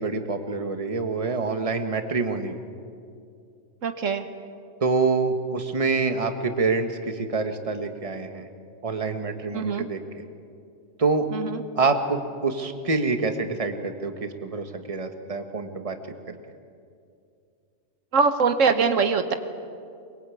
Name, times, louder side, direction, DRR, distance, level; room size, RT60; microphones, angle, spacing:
voice 1, 0.0-2.6 4.8-8.5 8.8-10.0 11.0-11.3 11.7-16.0 16.3-16.4, right 4 dB, 30° right, 6 dB, 1.5 m, -26 dB
voice 2, 3.8-4.3 9.5-9.9 11.3-11.6 18.1-19.3, right 5 dB, 80° right, 8 dB, 1.5 m, -22 dB
23.0 x 22.5 x 8.6 m, 2.4 s
omnidirectional pair, 1.3 m